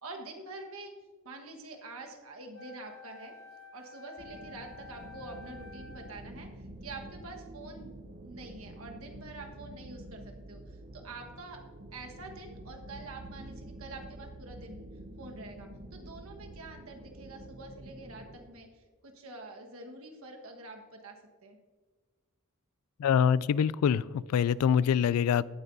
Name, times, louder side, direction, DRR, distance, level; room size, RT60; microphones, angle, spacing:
voice 1, 0.0-0.9 1.2-3.3 3.7-7.9 8.2-11.6 11.9-14.9 15.2-21.6, right 2 dB, 70° right, 2 dB, 1.4 m, -46 dB
Wind instrument woodwind instrument, 2.5-6.3, left 5 dB, 65° left, 1.5 m, -51 dB
sound 1, 4.2-18.5, right 1 dB, 50° right, 0.8 m, -48 dB
voice 2, 23.0-25.4, left 8 dB, 80° left, 20 dB, 0.3 m, -25 dB
16.5 x 9.4 x 2.7 m, 1.5 s
head